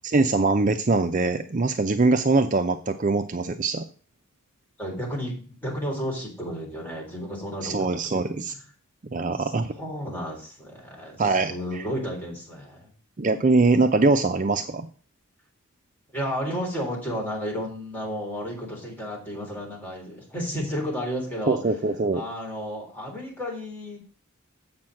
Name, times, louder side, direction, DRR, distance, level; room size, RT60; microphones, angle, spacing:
voice 1, 0.0-3.9 7.6-8.5 9.1-9.7 11.2-11.9 13.2-14.9 21.5-22.2, right 3 dB, 35° right, 7 dB, 0.5 m, -22 dB
voice 2, 4.8-5.3 5.6-8.0 8.5-8.6 9.4-12.9 16.1-21.6 22.1-24.0, equal, 10° left, -3 dB, 3.7 m, -32 dB
7.8 x 6.0 x 7.5 m, 0.42 s
head